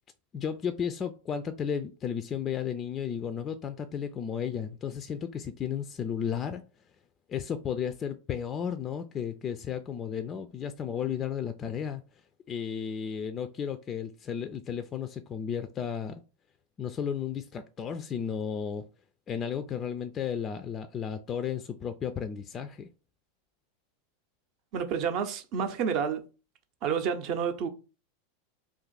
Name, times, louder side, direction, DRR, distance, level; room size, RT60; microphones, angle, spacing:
voice 1, 0.3-6.6 7.3-12.0 12.5-16.2 16.8-18.8 19.3-22.9, left 8 dB, 30° left, 0.3 m, -33 dB
voice 2, 24.7-26.2 26.8-27.7, right 7 dB, 50° right, 0.6 m, -29 dB
2.6 x 2.4 x 3.8 m
hypercardioid pair, 90°, 0 cm